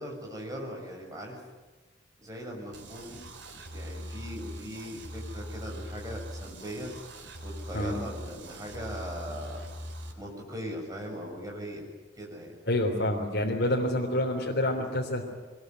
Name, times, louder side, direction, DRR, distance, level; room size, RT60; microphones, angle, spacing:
voice 1, 0.0-1.4 2.2-3.2 3.7-6.9 7.4-9.7 10.2-11.9 12.1-12.6, equal, 20° right, 0 dB, 6.8 m, -39 dB
sound 1, 2.7-10.1, equal, 75° right, 4.3 m, -41 dB
voice 2, 12.7-15.2, left 1 dB, 60° left, -1 dB, 3.5 m, -27 dB
23.5 x 21.0 x 9.4 m, 1.2 s
head